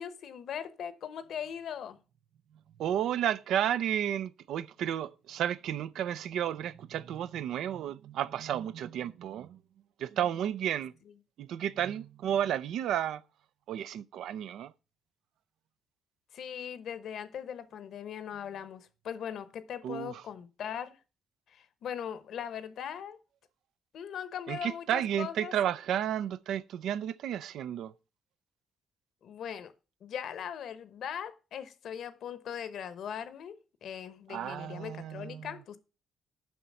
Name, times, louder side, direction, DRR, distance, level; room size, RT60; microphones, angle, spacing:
voice 1, 0.0-2.0 16.3-21.0 21.5-23.2 23.9-25.5 29.2-29.7 30.0-35.8, left 8 dB, 70° left, 1.0 m, -40 dB
voice 2, 2.8-9.6 10.0-10.9 11.4-13.2 13.7-14.7 19.8-20.2 24.5-27.9 34.3-35.5, right 10 dB, 80° right, 0.5 m, -32 dB
7.0 x 5.8 x 7.5 m
cardioid pair, 90°, 0 cm